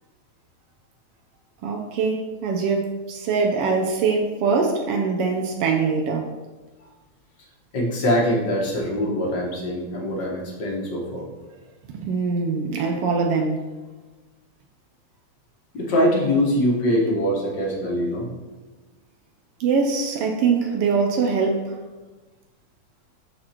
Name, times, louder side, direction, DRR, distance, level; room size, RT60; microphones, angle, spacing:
voice 1, 1.6-6.3 11.9-13.7 19.6-21.8, right 5 dB, 90° right, 2 dB, 1.3 m, -23 dB
voice 2, 7.7-11.3 15.7-18.3, equal, 45° left, -3 dB, 1.6 m, -23 dB
12.5 x 4.2 x 2.9 m, 1.3 s
omnidirectional pair, 3.4 m